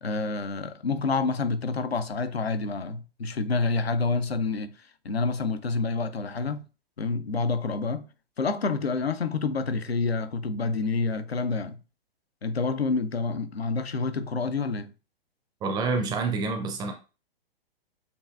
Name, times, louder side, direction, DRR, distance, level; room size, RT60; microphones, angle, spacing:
voice 1, 0.0-4.8 5.0-6.6 7.0-8.1 8.4-11.8 12.4-14.9, left 4 dB, 90° left, 0.5 m, -28 dB
voice 2, 15.6-16.9, right 4 dB, 15° right, 0.5 m, -27 dB
6.8 x 2.5 x 2.3 m
figure-of-eight pair, 110°, 30 cm